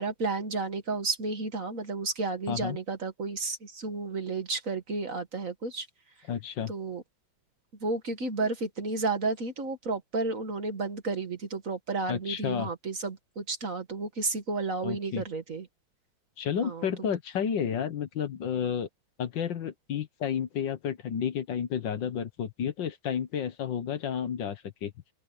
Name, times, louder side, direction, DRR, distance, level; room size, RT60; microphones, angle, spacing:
voice 1, 0.0-5.9 6.7-7.0 7.8-15.7 16.6-17.1, right 3 dB, 40° right, 1.9 m, -32 dB
voice 2, 2.5-2.8 6.3-6.7 12.1-12.7 14.8-15.2 16.4-18.9 19.2-24.9, left 8 dB, 65° left, 1.8 m, -31 dB
open air
omnidirectional pair, 2.2 m